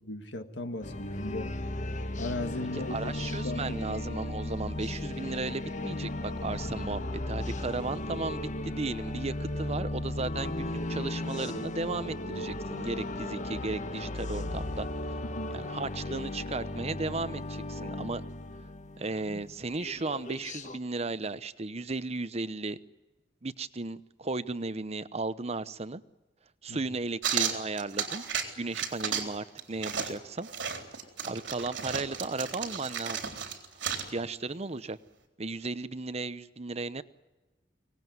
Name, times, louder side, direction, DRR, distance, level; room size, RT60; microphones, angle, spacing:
voice 1, 0.0-1.5 2.2-3.8 15.2-15.6 26.7-26.8, left 2 dB, 75° left, 7 dB, 1.9 m, -37 dB
sound 1, 0.8-20.8, left 1 dB, 45° left, 1.3 m, -36 dB
voice 2, 2.9-14.9 15.5-18.2 19.0-22.8 23.4-26.0 26.6-28.2 28.6-30.5 31.2-33.3 33.9-35.0 35.4-37.0, right 3 dB, 35° right, 14 dB, 0.9 m, -35 dB
sound 2, 27.2-28.5 28.7-29.3 29.6-34.1, right 7 dB, 85° right, 3.7 m, -33 dB
24.5 x 19.0 x 9.5 m, 1.1 s
head